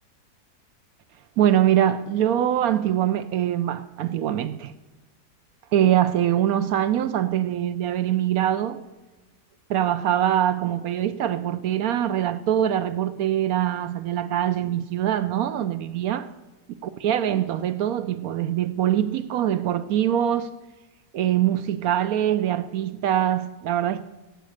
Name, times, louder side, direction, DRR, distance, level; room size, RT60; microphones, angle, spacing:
voice 1, 1.4-4.7 5.7-8.8 9.7-16.3 16.8-20.5 21.1-24.0, right 11 dB, 70° right, 0.9 m, -23 dB
11.5 x 8.0 x 6.4 m
omnidirectional pair, 1.9 m